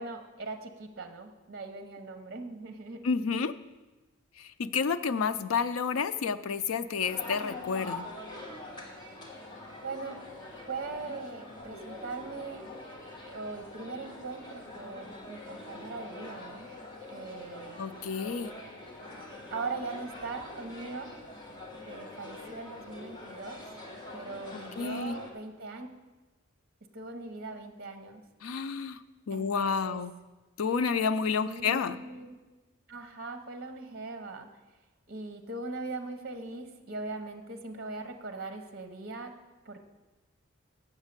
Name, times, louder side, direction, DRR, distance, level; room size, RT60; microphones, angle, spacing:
voice 1, 0.0-3.1 9.8-10.3 10.7-12.6 13.3-16.7 17.1-17.8 19.5-21.1 21.9-23.6 24.1-25.9 26.9-28.2 29.3-30.0 31.4-32.4 32.9-34.5 35.1-39.3 39.6-39.8, right 3 dB, 45° right, 6 dB, 0.8 m, -40 dB
voice 2, 3.0-3.5 4.4-8.1 17.8-18.5 24.7-25.2 28.4-29.0 29.3-30.1 30.6-32.0, left 5 dB, 85° left, 12 dB, 0.4 m, -30 dB
sound 1, 7.0-25.3, left 2 dB, 20° left, 1.3 m, -44 dB
8.1 x 7.3 x 6.6 m, 1.2 s
head